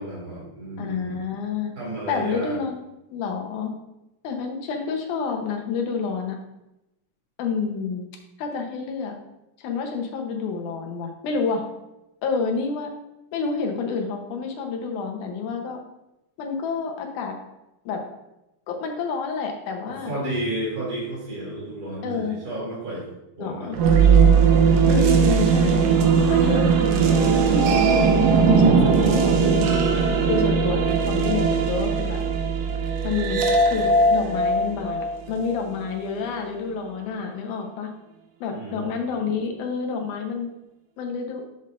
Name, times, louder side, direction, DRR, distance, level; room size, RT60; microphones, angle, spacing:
voice 1, 0.0-1.2 1.7-2.5 19.9-23.0 23.4-23.7 38.5-38.9, right 1 dB, 30° right, -7 dB, 3.0 m, -32 dB
voice 2, 0.8-1.7 2.1-2.8 3.1-3.7 4.2-6.4 7.4-8.1 8.4-9.2 9.6-11.6 12.2-12.9 13.3-15.8 16.4-17.4 17.9-18.0 18.7-20.2 22.0-22.4 23.4-23.8 24.9-25.9 26.3-29.6 30.3-32.2 33.0-37.9 38.4-40.5 41.0-41.4, left 5 dB, 75° left, 2 dB, 2.4 m, -29 dB
sound 1, 23.7-35.6, right 5 dB, 75° right, 2.1 m, -19 dB
7.5 x 7.1 x 2.5 m, 0.91 s
omnidirectional pair, 3.7 m